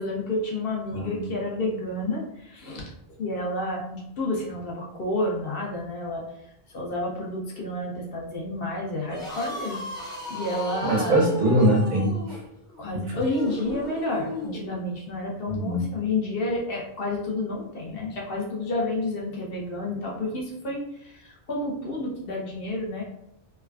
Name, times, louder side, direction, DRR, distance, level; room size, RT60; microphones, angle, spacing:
voice 1, 0.0-2.9 3.2-6.2 6.7-9.8 10.3-11.2 12.8-21.2 21.5-23.0, left 2 dB, 60° left, -2 dB, 0.8 m, -30 dB
voice 2, 0.9-1.3 10.8-12.4 12.9-13.1 15.5-15.9, right 1 dB, 80° right, -4 dB, 1.4 m, -23 dB
sound 1, 9.0-14.6, equal, 5° left, 0.5 m, -35 dB
3.3 x 2.1 x 2.3 m, 0.80 s
omnidirectional pair, 1.2 m